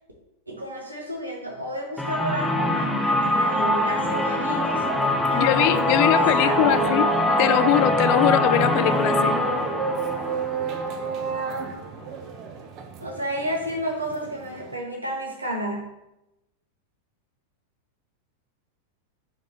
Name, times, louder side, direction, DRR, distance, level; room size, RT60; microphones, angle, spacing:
voice 1, 0.5-4.8 5.3-6.8 13.0-15.9, right 1 dB, 85° right, -1 dB, 1.4 m, -31 dB
sound 1, 2.0-11.7, left 1 dB, 5° left, 0.7 m, -23 dB
sound 2, 3.8-14.8, right 5 dB, 40° right, 0.7 m, -31 dB
voice 2, 5.3-7.1 7.4-9.3, left 14 dB, 45° left, 12 dB, 0.4 m, -22 dB
6.5 x 5.3 x 2.8 m, 0.90 s
figure-of-eight pair, 90°, 0 cm